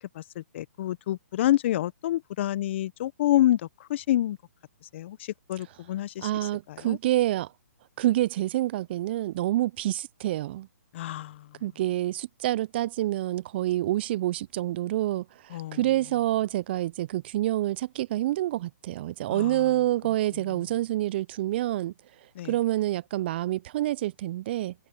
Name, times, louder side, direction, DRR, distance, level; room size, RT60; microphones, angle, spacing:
voice 1, 0.0-4.4 4.9-6.3 6.7-7.0 10.9-11.4 15.5-15.8 19.3-19.6 22.4-22.5, left 13 dB, 45° left, 1.1 m, -28 dB
voice 2, 6.2-7.5 8.0-10.7 11.6-21.9 22.5-24.7, right 14 dB, 40° right, 0.4 m, -27 dB
hypercardioid pair, 135°, 9 cm